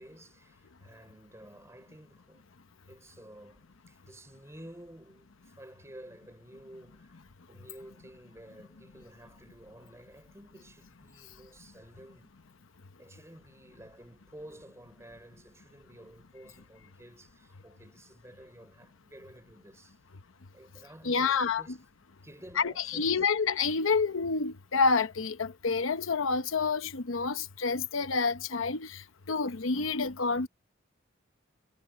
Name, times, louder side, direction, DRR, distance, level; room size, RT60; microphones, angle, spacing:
voice 1, 0.0-2.4 2.7-7.2 7.5-12.3 13.0-20.0 20.5-21.9 22.2-23.3, right 1 dB, 15° right, 4.4 m, -52 dB
voice 2, 21.0-21.6 22.6-29.0 29.3-30.5, left 4 dB, 80° left, 0.9 m, -28 dB
head